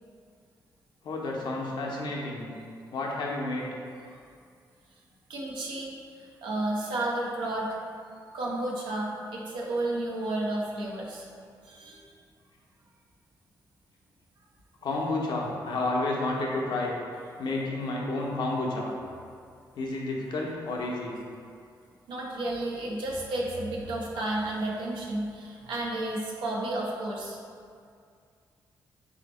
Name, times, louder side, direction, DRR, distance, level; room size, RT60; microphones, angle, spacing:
voice 1, 1.0-2.5 2.9-3.7 14.8-16.9 17.4-18.9 19.8-21.1, left 2 dB, 70° left, -2 dB, 0.7 m, -30 dB
voice 2, 5.3-7.7 8.3-11.3 11.6-12.1 22.1-27.4, right 1 dB, 85° right, -2 dB, 0.6 m, -32 dB
3.3 x 2.8 x 4.1 m, 2.3 s
supercardioid pair, 60°, 8 cm